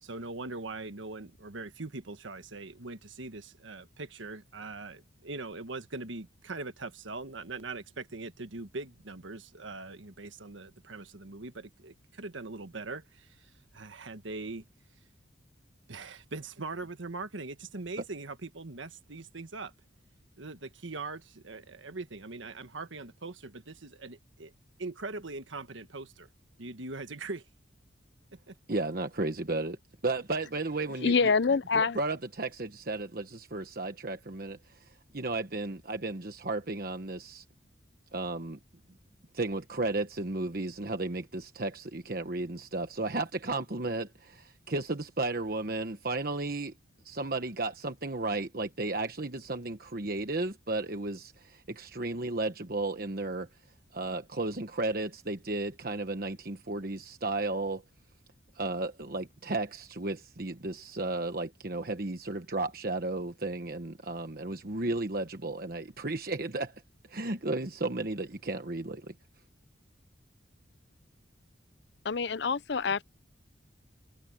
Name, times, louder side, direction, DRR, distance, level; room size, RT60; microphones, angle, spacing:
voice 1, 0.0-14.6 15.9-19.7 20.4-24.5 24.8-26.3 26.6-27.4 28.5-28.6, right 3 dB, 90° right, 1.5 m, -41 dB
voice 2, 28.7-29.8 30.0-34.6 35.1-37.4 38.1-38.6 39.3-46.7 47.0-53.5 53.9-57.8 58.5-66.7 67.1-69.1, right 2 dB, 50° right, 1.2 m, -34 dB
voice 3, 31.0-32.0 72.0-73.0, left 5 dB, 65° left, 0.6 m, -26 dB
head